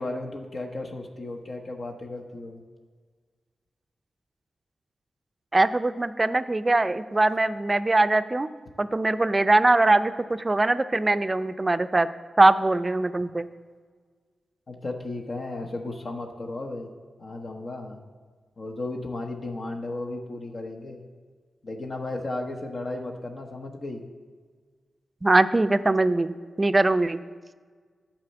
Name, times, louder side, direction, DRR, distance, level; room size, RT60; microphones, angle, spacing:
voice 1, 0.0-2.6 14.7-16.9 17.2-18.0 18.6-21.1 21.6-24.1, left 2 dB, 55° left, 2 dB, 0.9 m, -34 dB
voice 2, 5.5-8.5 8.8-12.1 12.4-13.5 25.2-27.2, right 2 dB, 30° right, 13 dB, 0.4 m, -22 dB
8.8 x 4.3 x 6.9 m, 1.6 s
supercardioid pair, 40°, 0 cm